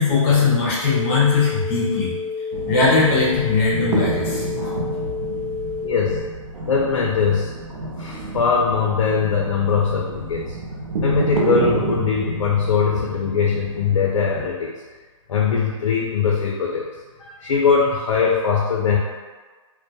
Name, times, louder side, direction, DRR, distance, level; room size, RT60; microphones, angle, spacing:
voice 1, 0.0-2.1 2.7-4.4, left 4 dB, 20° left, -6 dB, 0.5 m, -19 dB
sound 1, 0.8-6.2, left 5 dB, 40° right, 0.6 m, -29 dB
sound 2, 2.5-14.5, right 2 dB, 85° right, 0.6 m, -29 dB
voice 2, 5.8-6.3 6.7-7.5 8.0-10.6 11.0-14.8 15.3-16.9 17.2-19.0, left 5 dB, 70° left, -2 dB, 0.4 m, -21 dB
2.2 x 2.1 x 2.7 m, 1.4 s
hypercardioid pair, 165°, 17 cm